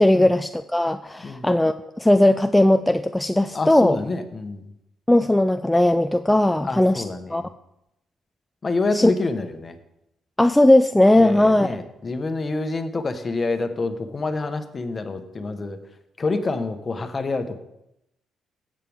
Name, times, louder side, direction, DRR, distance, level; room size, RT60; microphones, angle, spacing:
voice 1, 0.0-4.0 5.1-7.0 7.3-7.4 8.9-9.1 10.4-11.8, left 1 dB, 10° left, 9 dB, 0.3 m, -18 dB
voice 2, 3.5-4.7 6.6-7.5 8.6-9.8 11.1-15.8 16.2-17.6, left 3 dB, 35° left, 8 dB, 1.1 m, -27 dB
15.0 x 7.5 x 3.6 m, 0.85 s
cardioid pair, 90°, 0 cm